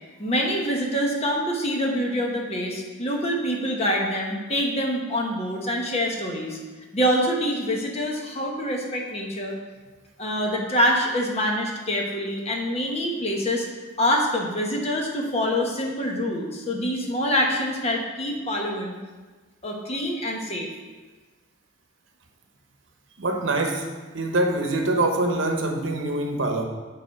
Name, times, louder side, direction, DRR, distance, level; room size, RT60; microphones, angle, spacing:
voice 1, 0.2-6.6 6.9-9.5 10.2-13.7 14.0-18.9 19.6-20.7, equal, 30° left, 0 dB, 1.1 m, -25 dB
voice 2, 23.2-23.8 24.1-26.6, right 2 dB, 70° right, 3 dB, 0.9 m, -24 dB
8.3 x 4.0 x 5.8 m, 1.3 s
head